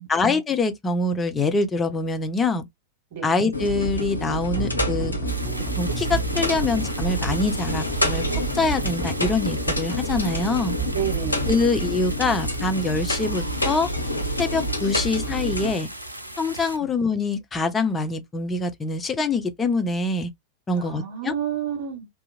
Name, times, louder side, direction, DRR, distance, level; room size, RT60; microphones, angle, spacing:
voice 1, 0.0-2.7 3.2-5.2 5.8-8.2 8.5-10.8 11.5-13.9 14.4-15.9 16.4-20.3 20.7-21.3, left 3 dB, 15° left, 0.5 m, -24 dB
sound 1, 3.5-15.7, equal, 80° left, 0.5 m, -27 dB
sound 2, 4.5-11.6, right 7 dB, 25° right, 1.3 m, -33 dB
sound 3, 5.2-16.8, right 1 dB, 85° right, 0.4 m, -37 dB
voice 2, 10.9-11.7 16.8-16.9 20.7-22.1, right 9 dB, 55° right, 1.4 m, -30 dB
2.8 x 2.4 x 2.3 m
figure-of-eight pair, 90°, 0 cm